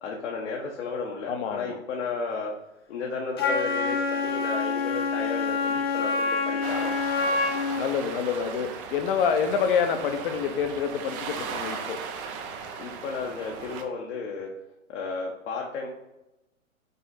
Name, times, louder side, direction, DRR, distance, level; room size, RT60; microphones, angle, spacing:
voice 1, 0.0-2.5 2.9-7.2 12.8-14.5 14.9-15.9, left 4 dB, 55° left, -2 dB, 1.2 m, -33 dB
voice 2, 1.3-1.8 7.8-12.0, left 6 dB, 40° left, 7 dB, 0.9 m, -27 dB
Wind instrument woodwind instrument, 3.4-7.9, left 4 dB, 20° left, 0.3 m, -26 dB
sound 1, 6.6-13.8, right 5 dB, 25° right, 0.6 m, -37 dB
5.5 x 4.2 x 4.1 m, 0.94 s
hypercardioid pair, 120°, 41 cm